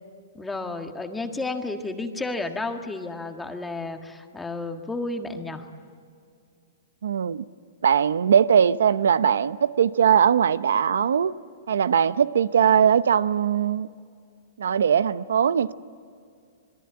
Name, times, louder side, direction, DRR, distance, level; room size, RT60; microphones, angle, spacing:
voice 1, 0.3-5.7, left 2 dB, 5° left, 1.5 m, -32 dB
voice 2, 7.0-7.4 7.8-11.3 11.7-13.9 14.6-15.7, right 8 dB, 90° right, 0.7 m, -20 dB
26.0 x 21.5 x 8.9 m
hypercardioid pair, 160°, 0 cm